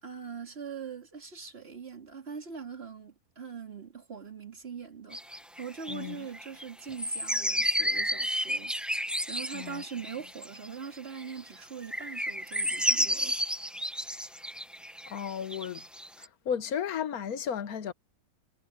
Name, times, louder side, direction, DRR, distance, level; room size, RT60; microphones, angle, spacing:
voice 1, 0.0-8.7 9.3-13.4, right 6 dB, 35° right, 2.7 m, -42 dB
sound 1, 5.1-10.9 11.2-11.5 11.8-16.3, equal, ahead, 0.6 m, -31 dB
voice 2, 5.9-6.3 9.5-9.8 15.1-15.8 16.2-17.9, left 8 dB, 65° left, 1.4 m, -34 dB
omnidirectional pair, 1.8 m